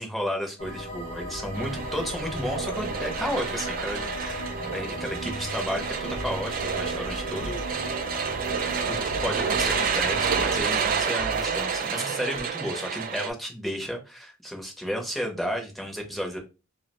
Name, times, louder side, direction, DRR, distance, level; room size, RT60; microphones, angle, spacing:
voice 1, 0.0-4.5 4.7-7.9 8.9-16.4, equal, ahead, 1 dB, 0.6 m, -33 dB
sound 1, 0.6-10.6, equal, 35° left, 0.7 m, -35 dB
sound 2, 1.5-13.3, right 6 dB, 45° right, 0.3 m, -29 dB
sound 3, 6.1-7.8 8.3-10.0 10.3-12.4, right 1 dB, 75° left, 0.6 m, -41 dB
2.8 x 2.0 x 2.8 m, 0.30 s
head